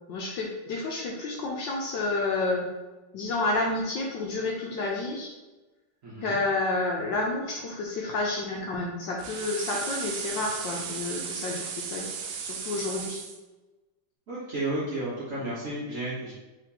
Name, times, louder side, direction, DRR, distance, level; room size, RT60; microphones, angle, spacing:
voice 1, 0.1-2.7 3.1-5.3 6.2-12.1 12.4-13.2 15.3-15.4, left 2 dB, 75° left, -1 dB, 1.1 m, -30 dB
voice 2, 6.0-6.4 14.3-16.3, right 2 dB, 55° right, -7 dB, 1.0 m, -32 dB
sound 1, 9.2-13.4, right 6 dB, 75° right, 1.0 m, -35 dB
4.2 x 3.6 x 2.7 m, 1.1 s
omnidirectional pair, 2.4 m